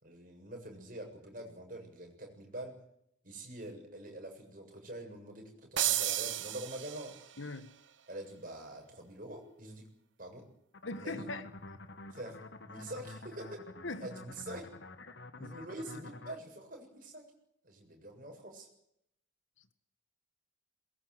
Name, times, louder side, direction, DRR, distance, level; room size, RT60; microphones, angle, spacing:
voice 1, 0.0-2.8 3.2-7.1 8.1-9.9 10.2-10.5 11.0-11.3 12.1-12.4 12.7-13.6 14.0-14.7 15.3-17.3 17.6-18.7, right 1 dB, 45° right, 3 dB, 7.3 m, -45 dB
sound 1, 5.8-7.4, right 13 dB, 80° right, 1.2 m, -33 dB
voice 2, 7.4-7.7 10.9-11.5 13.8-14.0 15.1-15.5, left 2 dB, 90° left, 12 dB, 1.9 m, -41 dB
sound 2, 10.7-16.4, left 2 dB, 65° left, 1.6 m, -48 dB
22.5 x 21.0 x 8.1 m, 0.74 s
head